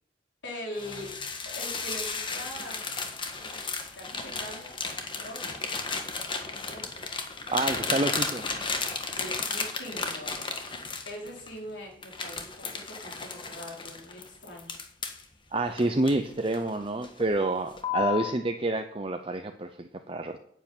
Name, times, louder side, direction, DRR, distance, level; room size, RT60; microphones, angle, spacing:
voice 1, 0.4-1.1 1.4-2.9 3.5-4.7 5.1-5.6 6.5-7.1 7.4-7.9 9.2-10.8 11.0-14.8, left 1 dB, 70° left, 0 dB, 4.7 m, -42 dB
sound 1, 0.8-11.5 12.0-15.2 15.8-16.7 17.0-17.3 17.8-18.3, left 4 dB, 25° left, 1.6 m, -34 dB
voice 2, 7.5-8.4 15.5-20.4, right 2 dB, 30° right, 6 dB, 0.7 m, -28 dB
10.5 x 8.3 x 8.9 m, 0.70 s
head